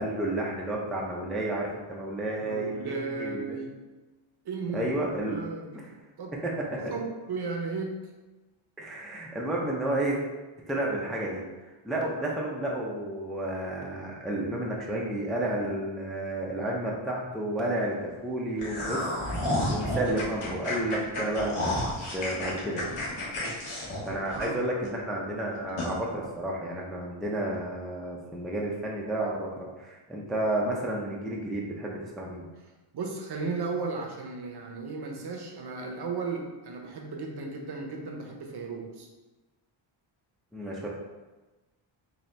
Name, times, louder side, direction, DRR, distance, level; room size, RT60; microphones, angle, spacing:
voice 1, 0.0-3.6 4.7-5.4 5.8-5.9 6.4-6.5 8.8-10.2 10.7-11.4 11.8-19.0 19.3-22.9 23.7-32.5 40.5-40.9, right 1 dB, ahead, -3 dB, 0.4 m, -31 dB
voice 2, 2.4-3.8 4.4-4.9 5.3-5.9 6.2-6.3 6.7-8.1 24.3-24.6 32.9-39.1, right 4 dB, 50° right, 1 dB, 0.7 m, -35 dB
sound 1, 18.6-24.9 25.2-25.3 25.8-25.9, left 1 dB, 75° left, 1.3 m, -31 dB
4.0 x 2.7 x 3.2 m, 1.2 s
wide cardioid pair, 140°, 50 cm